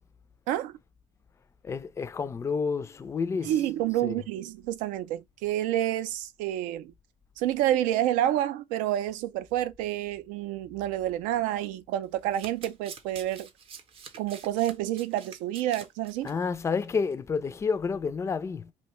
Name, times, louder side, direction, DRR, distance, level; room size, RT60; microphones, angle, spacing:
voice 1, 0.5-0.8 3.4-6.9 7.4-13.5 14.2-16.3, right 12 dB, 85° right, 0.4 m, -29 dB
voice 2, 1.6-3.5 4.0-4.2 16.2-18.7, left 5 dB, 20° left, 0.3 m, -30 dB
Domestic sounds home sounds, 12.0-16.3 16.7-16.9 17.1-17.2, right 6 dB, 45° right, 0.6 m, -46 dB
2.6 x 2.2 x 2.9 m
cardioid pair, 120°, 13 cm